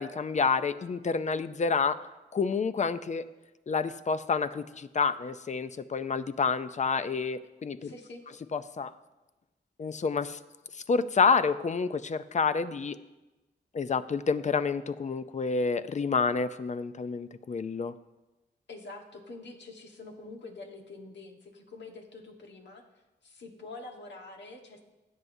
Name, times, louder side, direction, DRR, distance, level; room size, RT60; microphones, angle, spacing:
voice 1, 0.0-2.1 2.3-3.3 3.7-7.9 8.5-8.9 9.8-10.4 10.9-13.0 13.7-17.9, left 5 dB, 40° left, 13 dB, 0.5 m, -28 dB
voice 2, 7.8-8.2 18.7-22.8 23.2-24.8, left 3 dB, 75° left, 2 dB, 1.4 m, -46 dB
16.5 x 7.9 x 2.7 m, 1.1 s
cardioid pair, 85°, 18 cm